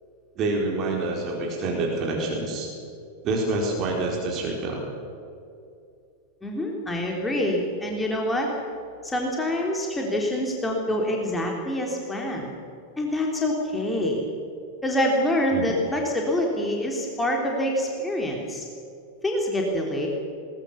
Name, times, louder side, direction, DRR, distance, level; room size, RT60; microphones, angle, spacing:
voice 1, 0.4-2.7 3.2-4.8 15.5-15.7, right 2 dB, 35° right, -1 dB, 4.3 m, -27 dB
voice 2, 6.4-8.5 9.0-12.5 13.0-14.3 14.8-18.6 19.2-20.1, left 1 dB, 10° left, -1 dB, 3.3 m, -26 dB
21.0 x 19.5 x 7.1 m, 2.5 s
figure-of-eight pair, 90°, 0 cm